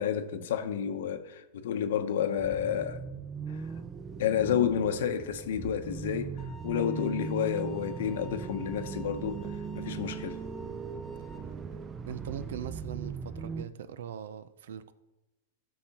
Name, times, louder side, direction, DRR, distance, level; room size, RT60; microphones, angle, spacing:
voice 1, 0.0-3.0 4.2-6.4 6.6-9.4 9.7-10.4, left 8 dB, 75° left, 0.8 m, -30 dB
sound 1, 2.4-13.6, right 6 dB, 20° right, 0.5 m, -39 dB
sound 2, 6.4-11.4, left 2 dB, 20° left, 1.1 m, -53 dB
voice 2, 12.1-14.9, right 9 dB, 80° right, 0.5 m, -40 dB
13.5 x 6.4 x 2.9 m
hypercardioid pair, 130°, 0 cm